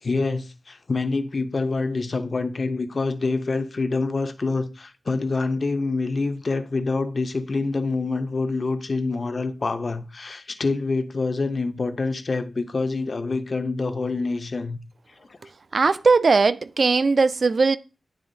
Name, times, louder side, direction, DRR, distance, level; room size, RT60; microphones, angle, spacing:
voice 1, 0.0-14.8 15.1-15.4, left 3 dB, 45° left, 0.6 m, -26 dB
voice 2, 15.7-17.8, right 4 dB, 50° right, 0.4 m, -19 dB
10.0 x 3.6 x 2.6 m
wide cardioid pair, 135°, 0 cm